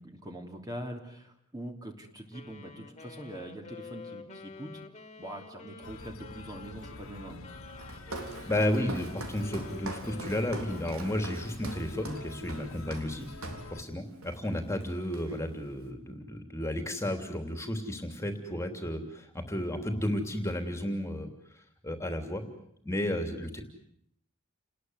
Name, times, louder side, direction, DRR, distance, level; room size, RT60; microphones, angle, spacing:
voice 1, 0.0-4.8 5.2-7.4 15.3-15.4, right 1 dB, 20° right, 3 dB, 3.0 m, -43 dB
Wind instrument woodwind instrument, 2.3-11.9, left 4 dB, 30° left, 2.4 m, -49 dB
sound 1, 5.8-13.8, left 2 dB, 85° left, 1.9 m, -47 dB
Walk footsteps, 7.8-13.7 14.2-14.5 14.8-15.6, right 2 dB, 85° right, 3.7 m, -43 dB
voice 2, 8.5-21.3 21.5-22.4 22.8-23.6, left 1 dB, 15° left, 6 dB, 3.0 m, -33 dB
30.0 x 20.0 x 8.0 m, 0.72 s
head